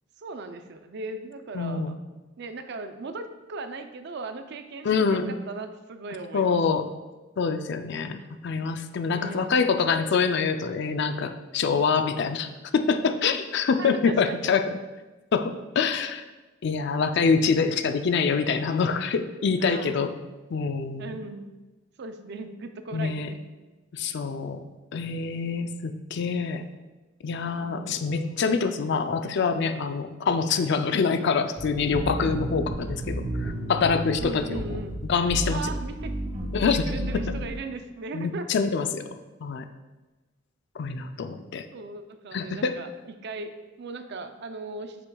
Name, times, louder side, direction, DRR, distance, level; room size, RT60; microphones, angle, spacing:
voice 1, 0.2-2.0 2.4-6.6 8.2-8.3 9.1-9.6 13.3-13.4 13.8-14.5 19.6-20.1 21.0-21.5 22.0-23.4 27.6-28.5 34.2-35.0 35.5-36.3 36.6-38.5 41.7-45.0, right 3 dB, 55° right, 8 dB, 0.5 m, -38 dB
voice 2, 1.5-1.9 4.8-5.3 6.3-6.9 7.4-14.6 15.3-16.2 16.6-20.2 20.5-21.1 22.9-23.3 23.9-24.6 24.9-26.6 27.2-34.6 35.1-35.6 36.5-36.8 38.1-39.1 39.4-39.6 40.8-41.6 42.3-42.7, left 5 dB, 55° left, 8 dB, 0.4 m, -25 dB
sound 1, 31.6-37.6, right 1 dB, 40° right, 1.5 m, -32 dB
7.9 x 5.9 x 2.3 m, 1.2 s
head